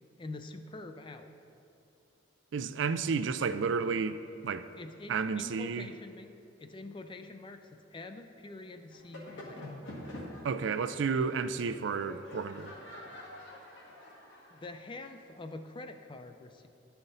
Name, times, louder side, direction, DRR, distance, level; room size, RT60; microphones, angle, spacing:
voice 1, 0.2-1.3 4.8-9.7 13.2-13.3 14.5-16.7, left 2 dB, 25° left, 8 dB, 0.4 m, -45 dB
voice 2, 2.5-4.2 4.4-4.7 5.1-5.9 10.4-12.7, right 5 dB, 70° right, 12 dB, 0.4 m, -31 dB
sound 1, 8.9-15.3, left 1 dB, 70° left, 1.6 m, -47 dB
12.0 x 5.7 x 4.0 m, 2.7 s
head